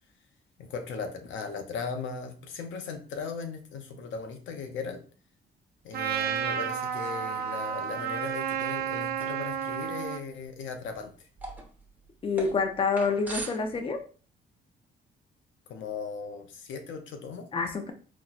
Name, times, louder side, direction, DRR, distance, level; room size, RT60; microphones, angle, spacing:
voice 1, 0.6-5.0 5.8-11.1 15.7-17.5, left 5 dB, 75° left, 6 dB, 0.6 m, -38 dB
Trumpet, 5.9-10.2, right 8 dB, 50° right, 0.5 m, -31 dB
sound 1, 9.2-9.8 10.1-10.2 10.7-11.0 11.4-14.0, right 2 dB, 10° right, 1.0 m, -40 dB
voice 2, 12.2-14.0 17.5-17.9, left 4 dB, 25° left, 7 dB, 0.5 m, -27 dB
4.2 x 2.1 x 2.4 m, 0.39 s
cardioid pair, 90°, 20 cm